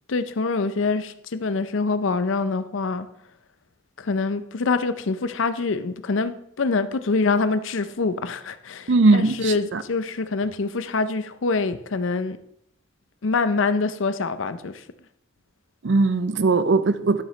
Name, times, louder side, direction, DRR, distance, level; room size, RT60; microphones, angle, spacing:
voice 1, 0.1-3.1 4.0-6.3 6.6-12.4 13.2-14.7, left 4 dB, 75° left, 0.6 m, -25 dB
voice 2, 8.9-9.8 15.8-17.2, right 3 dB, 60° right, 0.5 m, -19 dB
11.5 x 6.6 x 3.2 m
head